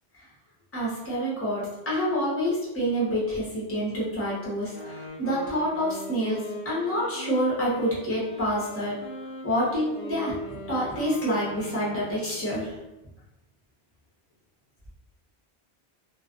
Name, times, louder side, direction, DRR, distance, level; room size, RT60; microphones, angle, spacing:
voice 1, 0.7-9.0 9.4-10.3 10.7-12.7, equal, 15° left, -7 dB, 0.7 m, -27 dB
Wind instrument woodwind instrument, 4.7-12.5, equal, 60° left, 0.7 m, -41 dB
2.3 x 2.2 x 2.5 m, 0.95 s
omnidirectional pair, 1.1 m